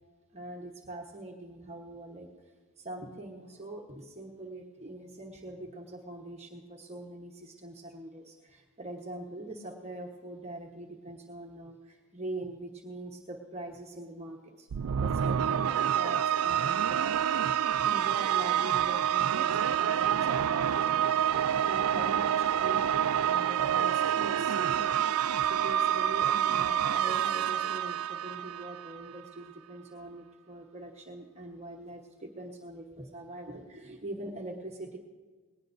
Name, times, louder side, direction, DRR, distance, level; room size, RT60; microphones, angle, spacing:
voice 1, 0.3-2.3 2.8-14.7 15.0-17.5 17.8-21.3 21.6-23.0 23.2-24.9 25.4-35.0, right 1 dB, 30° right, 0 dB, 1.1 m, -43 dB
sound 1, 14.7-29.1, right 9 dB, 75° right, 0.4 m, -27 dB
20.0 x 18.5 x 2.6 m, 1.4 s
head